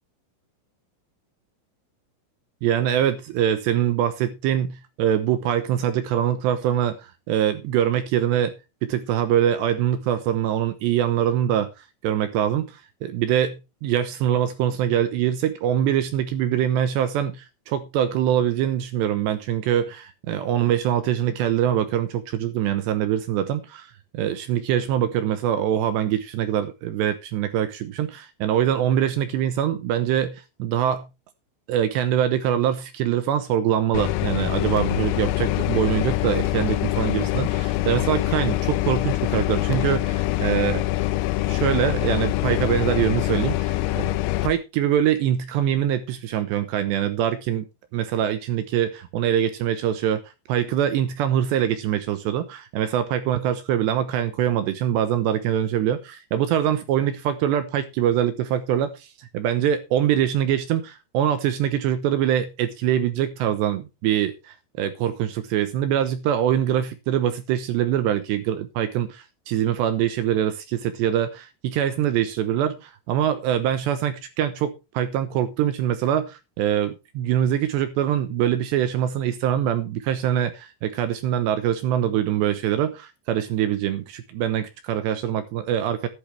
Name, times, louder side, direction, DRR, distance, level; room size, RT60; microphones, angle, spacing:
voice 1, 2.6-7.0 7.3-8.6 8.8-11.7 12.0-23.9 24.1-31.1 31.7-40.8 41.5-47.6 47.9-50.2 50.5-86.1, right 10 dB, 75° right, 2.7 m, -24 dB
sound 1, 33.9-44.5, left 17 dB, 90° left, 3.6 m, -24 dB
13.5 x 12.0 x 3.3 m
omnidirectional pair, 5.9 m